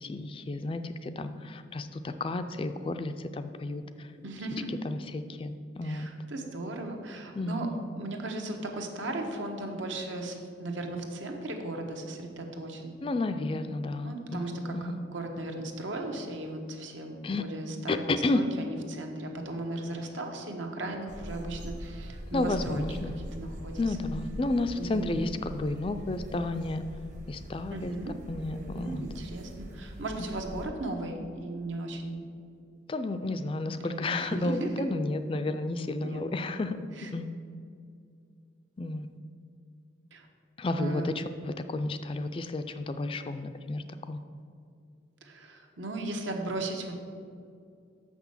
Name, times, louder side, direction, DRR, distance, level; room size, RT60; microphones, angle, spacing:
voice 1, 0.0-4.1 4.8-6.1 7.3-7.8 13.0-15.0 17.2-17.4 17.9-18.4 22.3-23.2 23.8-26.8 27.3-27.9 28.3-29.0 32.9-37.3 38.8-39.1 40.6-44.2, left 2 dB, 30° left, 9 dB, 0.3 m, -32 dB
voice 2, 4.2-4.8 5.8-7.7 7.9-12.9 14.0-23.0 23.4-24.1 24.7-25.2 27.7-28.1 28.7-32.2 33.8-34.9 36.0-36.2 37.0-37.1 40.1-40.3 40.8-41.1 45.2-47.0, right 2 dB, 85° right, 3 dB, 1.1 m, -37 dB
sound 1, 21.1-30.7, equal, 40° right, 0.8 m, -42 dB
6.3 x 6.0 x 7.1 m, 2.3 s
head